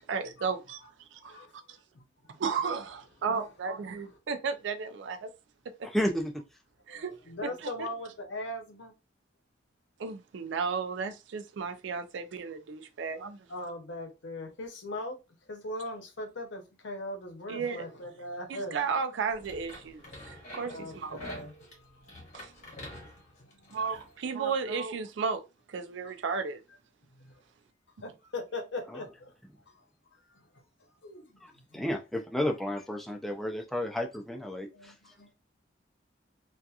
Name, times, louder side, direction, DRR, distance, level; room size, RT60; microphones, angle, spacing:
voice 1, 0.0-0.8 1.1-1.5 2.4-5.3 6.9-7.1 7.8-7.9 10.0-13.5 17.5-17.8 18.5-21.2 22.3-22.5 23.7-25.4 25.7-26.6, right 5 dB, 70° right, 0.4 m, -34 dB
voice 2, 0.8-2.3 3.9-4.2 6.9-8.9 13.5-15.2 15.5-18.8 20.7-22.7 23.0-23.8 27.1-27.4 28.0-29.3 29.7-31.9 34.5-35.3, left 1 dB, 70° left, 0.7 m, -41 dB
voice 3, 5.8-6.3 31.7-34.9, equal, ahead, 0.3 m, -31 dB
sound 1, 19.3-24.1, left 1 dB, 40° left, 0.9 m, -47 dB
2.7 x 2.3 x 2.3 m
head